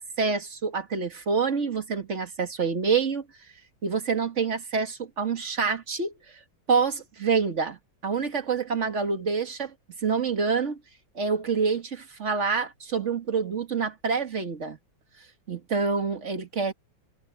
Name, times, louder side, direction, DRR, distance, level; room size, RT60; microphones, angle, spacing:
voice 1, 0.0-3.3 3.8-6.1 6.7-7.8 8.0-9.7 10.0-10.8 11.2-14.8 15.5-16.7, right 5 dB, 35° right, 2.0 m, -27 dB
omnidirectional pair, 2.3 m